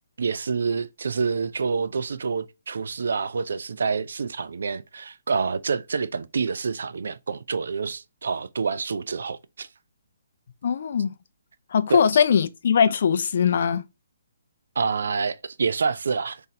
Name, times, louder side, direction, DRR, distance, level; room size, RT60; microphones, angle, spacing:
voice 1, 0.2-9.7 11.9-12.1 14.8-16.4, right 5 dB, 70° right, 0.3 m, -27 dB
voice 2, 10.6-11.1 11.7-13.8, left 7 dB, 55° left, 0.4 m, -21 dB
3.9 x 2.5 x 2.6 m
figure-of-eight pair, 140°, 0 cm